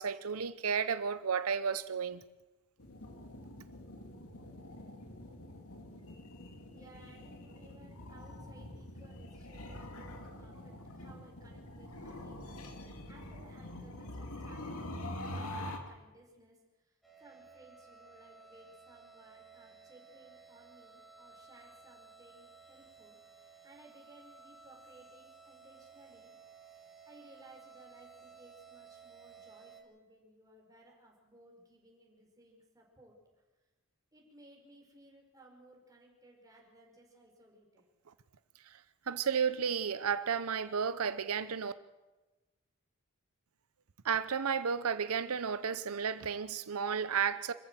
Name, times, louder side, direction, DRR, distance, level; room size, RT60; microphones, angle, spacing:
voice 1, 0.0-2.2 38.7-38.8 39.1-41.7 44.0-47.5, right 6 dB, 90° right, 0.7 m, -32 dB
sound 1, 2.8-15.8, left 1 dB, 85° left, 2.6 m, -45 dB
voice 2, 6.7-26.3 26.6-33.2 34.1-37.9, right 1 dB, 15° right, 4.8 m, -60 dB
sound 2, 17.0-29.8, right 5 dB, ahead, 2.7 m, -56 dB
25.0 x 14.5 x 7.5 m
head